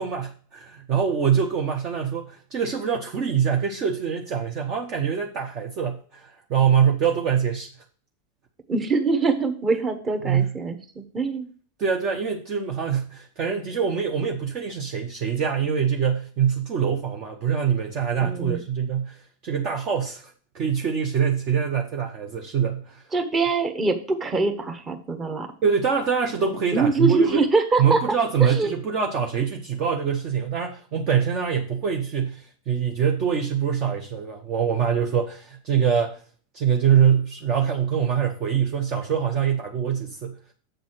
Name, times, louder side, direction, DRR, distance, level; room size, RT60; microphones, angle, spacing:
voice 1, 0.0-7.7 10.2-10.6 11.8-23.0 25.6-27.4 27.8-36.2 36.5-40.4, right 7 dB, 35° right, 2 dB, 0.9 m, -24 dB
voice 2, 8.7-11.5 18.2-18.6 23.1-25.5 26.7-28.0 28.4-28.7, right 3 dB, 20° right, 6 dB, 1.2 m, -23 dB
7.8 x 4.1 x 6.4 m, 0.41 s
figure-of-eight pair, 90°, 0 cm